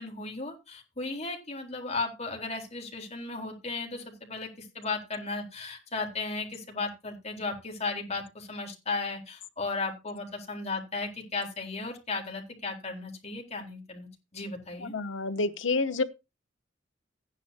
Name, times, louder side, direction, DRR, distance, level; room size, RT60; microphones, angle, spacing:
voice 1, 0.0-14.9, left 3 dB, 35° left, 4.0 m, -35 dB
voice 2, 14.8-16.0, left 3 dB, 80° left, 1.0 m, -28 dB
15.5 x 10.5 x 2.8 m
head